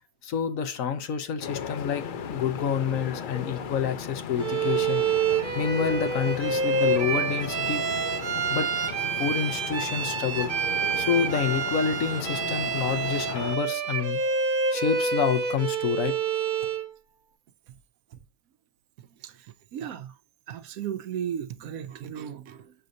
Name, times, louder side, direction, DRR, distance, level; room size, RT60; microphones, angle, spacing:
voice 1, 0.2-5.0 5.5-7.8 8.5-8.7 9.2-10.5 11.0-14.2 14.7-16.2, left 7 dB, 65° left, 1.1 m, -28 dB
sound 1, 1.4-13.6, left 7 dB, 85° left, 0.4 m, -36 dB
Bowed string instrument, 4.4-16.9, right 6 dB, 45° right, 0.9 m, -28 dB
voice 2, 19.0-19.5 19.7-20.1 20.5-22.7, right 9 dB, 75° right, 1.0 m, -35 dB
6.8 x 6.2 x 2.6 m
omnidirectional pair, 1.6 m